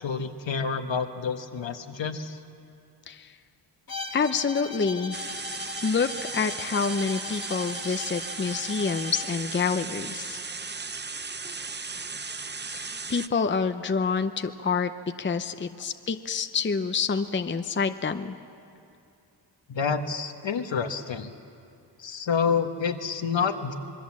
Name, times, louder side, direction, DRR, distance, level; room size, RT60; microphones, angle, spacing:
voice 1, 0.0-2.4 19.7-21.3 22.0-23.7, left 6 dB, 70° left, 7 dB, 1.4 m, -28 dB
Bowed string instrument, 3.9-9.4, left 3 dB, 50° left, 1.4 m, -39 dB
voice 2, 4.1-5.2 5.8-10.4 12.7-14.9 15.2-18.4, left 5 dB, 25° left, 9 dB, 0.7 m, -27 dB
sound 1, 5.1-13.3, right 4 dB, 25° right, 0.6 m, -36 dB
26.5 x 21.5 x 7.4 m, 2.6 s
wide cardioid pair, 105°, 46 cm